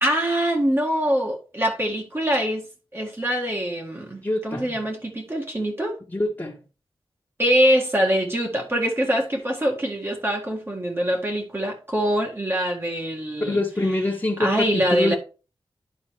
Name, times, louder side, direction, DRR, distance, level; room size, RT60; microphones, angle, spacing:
voice 1, 0.0-2.7 2.9-6.0 7.4-13.6 14.4-15.2, equal, 25° right, 1.7 m, -24 dB
voice 2, 4.2-4.8 6.1-6.5 13.4-15.2, left 2 dB, 20° left, 1.5 m, -25 dB
11.0 x 4.0 x 3.5 m
wide cardioid pair, 70°, 9 cm